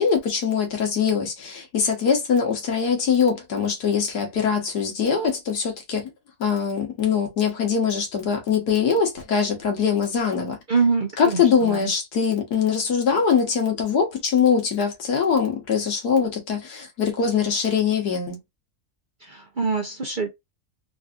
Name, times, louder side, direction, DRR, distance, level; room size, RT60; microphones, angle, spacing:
voice 1, 0.0-6.1 6.4-10.6 11.2-18.4, left 6 dB, 90° left, 1.7 m, -22 dB
voice 2, 10.7-11.9 19.2-20.3, right 4 dB, 50° right, 0.6 m, -25 dB
3.9 x 2.5 x 2.3 m
omnidirectional pair, 1.6 m